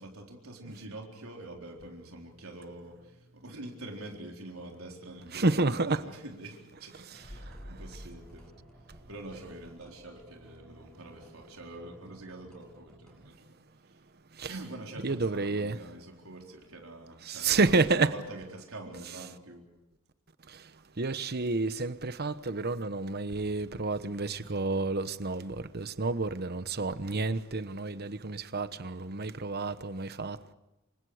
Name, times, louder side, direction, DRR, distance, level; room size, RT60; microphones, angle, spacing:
voice 1, 0.0-8.5 9.1-13.5 13.8-14.0 14.5-17.7 18.0-19.6, right 2 dB, 85° right, 4.2 m, -45 dB
voice 2, 5.3-6.0 14.4-14.5 15.0-15.8 17.3-18.1 21.0-30.5, right 3 dB, 50° right, 1.1 m, -30 dB
sound 1, 7.1-13.3, right 1 dB, 5° left, 6.8 m, -58 dB
sound 2, 7.2-11.0 11.2-11.3, equal, 30° left, 3.4 m, -50 dB
28.5 x 25.5 x 5.0 m
head